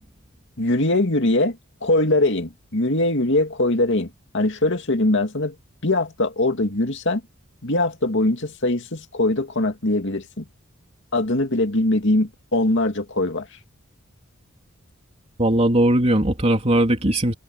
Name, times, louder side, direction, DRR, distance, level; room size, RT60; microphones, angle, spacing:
voice 1, 0.6-5.5 5.8-7.2 7.6-10.4 11.1-13.6, left 2 dB, 60° left, 2.5 m, -22 dB
voice 2, 15.4-17.3, right 1 dB, 30° right, 3.2 m, -19 dB
head